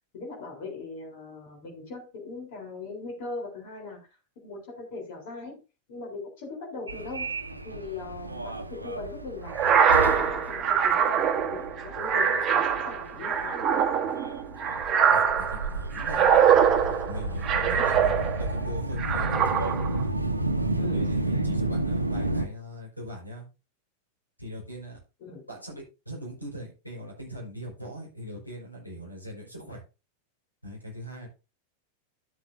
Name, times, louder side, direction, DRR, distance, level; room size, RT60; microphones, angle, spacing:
voice 1, 0.1-4.0 4.4-5.6 5.9-7.3 7.6-13.9 17.6-17.9 20.8-21.1 25.2-25.5, left 3 dB, 50° left, 1 dB, 3.8 m, -40 dB
Subway metro underground, 6.9-22.5, right 2 dB, 85° right, 0.9 m, -32 dB
sound 1, 9.5-18.6 19.0-20.0, right 7 dB, 30° right, 1.2 m, -23 dB
voice 2, 15.1-16.4 17.0-20.2 20.9-23.5 24.4-25.0 25.5-29.8 30.6-31.3, equal, 90° left, -2 dB, 5.0 m, -41 dB
13.0 x 7.5 x 2.7 m, 0.30 s
figure-of-eight pair, 90°, 0 cm